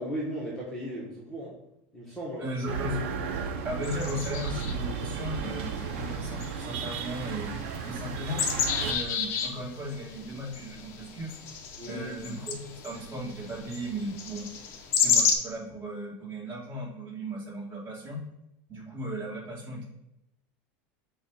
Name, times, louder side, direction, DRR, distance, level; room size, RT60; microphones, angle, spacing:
voice 1, 0.0-1.6 1.9-2.4 11.8-12.1, equal, 5° left, -7 dB, 1.2 m, -36 dB
voice 2, 2.4-3.0 3.6-7.5 7.8-8.4 8.8-11.4 11.8-14.5 15.0-18.2 18.7-19.8, right 1 dB, 30° right, -5 dB, 2.4 m, -36 dB
sound 1, 2.7-8.9, right 5 dB, 80° right, 0.7 m, -34 dB
sound 2, 3.8-15.3, left 6 dB, 45° left, 0.8 m, -32 dB
6.9 x 2.5 x 5.6 m, 0.85 s
supercardioid pair, 155°, 7 cm